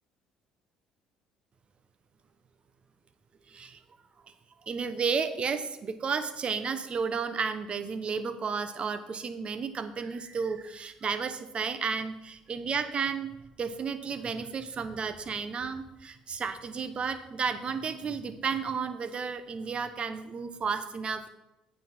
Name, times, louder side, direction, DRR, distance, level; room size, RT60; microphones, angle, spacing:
voice 1, 3.5-3.8 4.7-13.3 13.6-21.3, right 5 dB, 40° right, 11 dB, 1.0 m, -32 dB
9.1 x 7.9 x 4.4 m, 0.93 s
hypercardioid pair, 55°, 3 cm